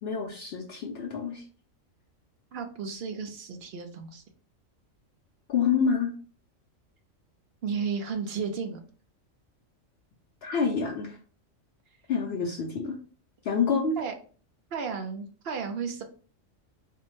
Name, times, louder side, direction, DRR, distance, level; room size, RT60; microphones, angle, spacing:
voice 1, 0.0-1.4 5.5-6.1 10.4-11.2 12.1-13.0 13.4-14.0, left 6 dB, 60° left, 0 dB, 0.7 m, -27 dB
voice 2, 2.5-4.2 7.6-8.8 14.0-14.1 14.7-16.0, right 5 dB, 60° right, 5 dB, 0.7 m, -33 dB
4.2 x 2.1 x 3.0 m, 0.42 s
omnidirectional pair, 1.4 m